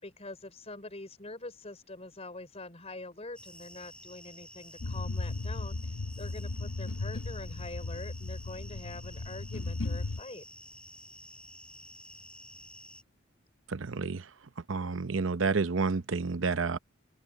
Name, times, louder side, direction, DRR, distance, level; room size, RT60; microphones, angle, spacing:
voice 1, 0.0-10.4, left 2 dB, 30° left, 5.1 m, -45 dB
sound 1, 3.3-13.0, left 1 dB, 5° left, 6.4 m, -51 dB
sound 2, 4.8-10.2, left 2 dB, 75° left, 0.9 m, -36 dB
voice 2, 13.7-16.8, right 4 dB, 75° right, 0.7 m, -30 dB
open air
head